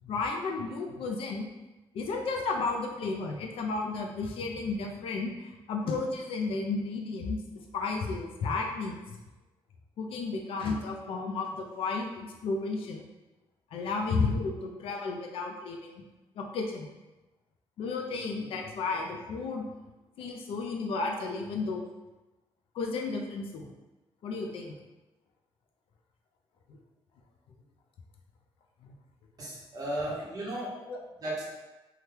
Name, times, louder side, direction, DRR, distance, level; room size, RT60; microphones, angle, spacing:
voice 1, 0.0-1.5 1.9-7.4 7.7-9.0 10.0-13.0 13.7-16.0 16.4-16.9 17.8-19.6 20.2-21.9 22.7-23.7 24.2-24.7 28.8-28.9 30.1-30.2 30.9-31.0, left 3 dB, 70° left, 2 dB, 0.4 m, -33 dB
voice 2, 29.4-30.8 31.2-31.5, right 1 dB, 40° right, -5 dB, 1.0 m, -35 dB
2.8 x 2.3 x 3.3 m, 1.1 s
cardioid pair, 130°, 10 cm